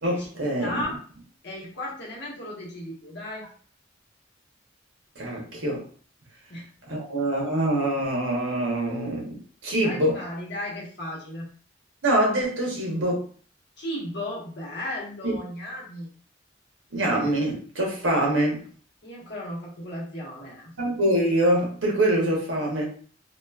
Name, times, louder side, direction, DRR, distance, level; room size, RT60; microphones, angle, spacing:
voice 1, 0.0-0.8 5.2-5.8 6.9-10.2 12.0-13.2 15.2-15.3 16.9-18.6 20.8-22.9, right 1 dB, 85° right, -1 dB, 1.0 m, -24 dB
voice 2, 0.6-1.0 1.4-3.5 6.5-7.0 9.8-11.5 13.8-16.1 19.0-20.7, left 1 dB, 60° left, -4 dB, 1.0 m, -35 dB
2.9 x 2.3 x 2.3 m, 0.43 s
head